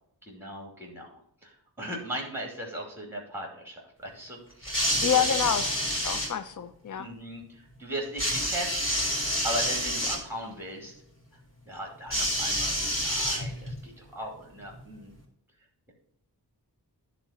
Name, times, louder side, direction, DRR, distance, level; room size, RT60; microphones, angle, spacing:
voice 1, 0.2-1.1 1.4-5.5 7.0-8.8 9.4-10.9 11.7-15.1, right 1 dB, 5° right, 0 dB, 2.6 m, -38 dB
sound 1, 4.6-6.3 8.2-10.2 12.1-13.8 14.8-14.9, equal, 30° left, 3.8 m, -28 dB
voice 2, 5.0-7.1, left 8 dB, 45° left, 12 dB, 0.7 m, -28 dB
10.5 x 3.9 x 5.8 m, 0.72 s
wide cardioid pair, 50°, 42 cm